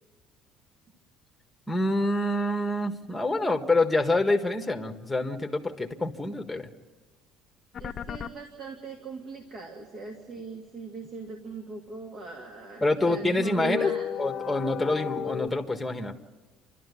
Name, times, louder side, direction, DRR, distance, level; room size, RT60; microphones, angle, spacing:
voice 1, 1.7-6.7 12.8-13.9 14.2-16.1, left 2 dB, 5° left, 4 dB, 1.6 m, -26 dB
sound 1, 7.7-8.3 12.7-15.5, left 8 dB, 35° left, 0.9 m, -34 dB
voice 2, 7.8-14.1, right 4 dB, 40° right, 2 dB, 2.6 m, -40 dB
29.5 x 12.5 x 9.7 m, 1.3 s
cardioid pair, 140°, 0 cm